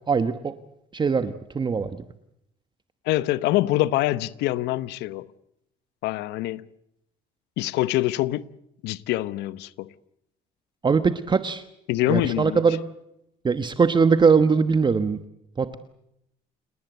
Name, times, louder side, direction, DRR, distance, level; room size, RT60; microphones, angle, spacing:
voice 1, 0.1-0.5 0.9-1.9 10.8-11.6 12.1-12.8 13.4-15.2 15.6-15.8, right 5 dB, 25° right, 1.2 m, -21 dB
voice 2, 3.1-5.3 6.0-6.6 7.6-8.5 8.8-9.9 11.9-12.6, left 16 dB, 90° left, 1.0 m, -25 dB
29.0 x 19.0 x 8.0 m
cardioid pair, 110°, 17 cm